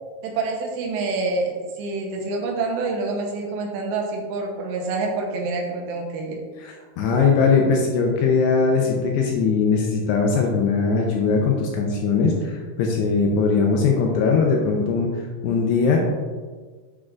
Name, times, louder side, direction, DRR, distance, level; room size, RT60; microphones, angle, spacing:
voice 1, 0.2-6.4, right 3 dB, 75° right, 0 dB, 2.9 m, -27 dB
voice 2, 6.6-15.1 15.4-16.0, left 5 dB, 80° left, 1 dB, 2.5 m, -20 dB
8.4 x 6.2 x 2.5 m, 1.5 s
omnidirectional pair, 5.3 m